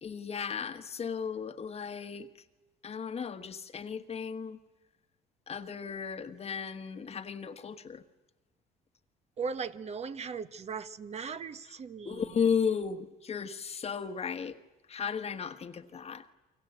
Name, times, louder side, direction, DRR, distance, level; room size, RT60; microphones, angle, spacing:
voice 1, 0.0-2.3 2.8-4.6 5.5-8.0 12.0-14.6 14.9-16.2, left 6 dB, 35° left, 1.4 m, -34 dB
voice 2, 9.4-12.5, right 5 dB, 40° right, 1.1 m, -38 dB
28.5 x 24.5 x 8.0 m
cardioid pair, 110°, 17 cm